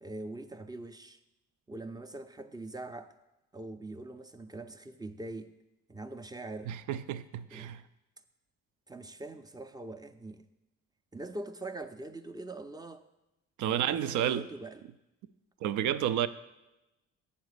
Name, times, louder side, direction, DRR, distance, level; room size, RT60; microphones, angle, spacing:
voice 1, 0.0-1.2 1.7-3.2 3.5-5.6 5.9-6.7 7.5-7.7 8.9-10.5 11.1-13.0 13.7-14.8, right 2 dB, 15° right, 8 dB, 0.4 m, -43 dB
voice 2, 6.7-7.8 13.6-14.4 15.6-16.3, right 10 dB, 80° right, 14 dB, 0.5 m, -30 dB
7.1 x 4.1 x 6.6 m, 0.96 s
cardioid pair, 90°, 30 cm